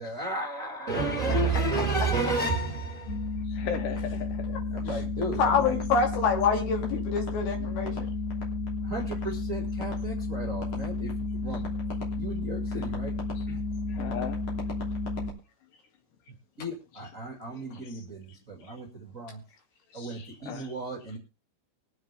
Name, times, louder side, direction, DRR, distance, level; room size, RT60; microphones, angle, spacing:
voice 1, 0.0-3.4 4.7-5.8 8.8-11.1 11.4-11.8 12.1-13.2 13.5-13.6 16.6-19.4 19.9-21.2, right 3 dB, 30° right, 1.6 m, -32 dB
sound 1, 3.1-15.3, left 3 dB, 40° left, 3.8 m, -32 dB
voice 2, 3.4-4.7 11.5-11.6 13.4-13.5 13.9-14.4 17.5-18.1 18.6-18.8 19.9-20.7, left 8 dB, 80° left, 1.9 m, -38 dB
voice 3, 5.2-8.1, left 5 dB, 65° left, 4.4 m, -26 dB
23.0 x 7.8 x 3.5 m
omnidirectional pair, 5.0 m